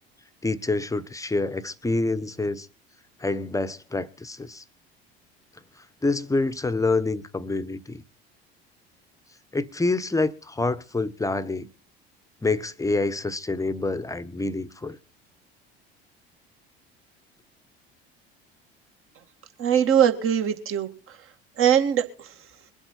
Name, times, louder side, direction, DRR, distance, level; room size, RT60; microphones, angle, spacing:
voice 1, 0.4-2.7 3.2-4.6 6.0-8.0 9.5-11.7 12.4-15.0, left 3 dB, 10° left, 1.1 m, -27 dB
voice 2, 19.6-21.2 21.6-22.4, right 9 dB, 45° right, 2.3 m, -22 dB
23.5 x 8.0 x 4.3 m
figure-of-eight pair, 65°, 31 cm